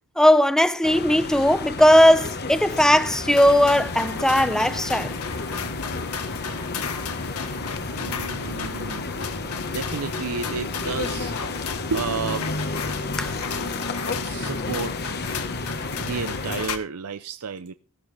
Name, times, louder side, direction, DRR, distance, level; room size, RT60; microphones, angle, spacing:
voice 1, 0.2-5.2 13.2-13.3, equal, ahead, 0.8 m, -18 dB
sound 1, 0.8-16.7, left 3 dB, 45° left, 1.4 m, -32 dB
sound 2, 3.3-16.8, left 5 dB, 90° left, 1.6 m, -34 dB
voice 2, 8.0-9.1 9.7-11.3 11.9-12.5 14.2-14.9 16.0-17.7, right 5 dB, 80° right, 0.7 m, -31 dB
18.0 x 13.5 x 3.4 m
head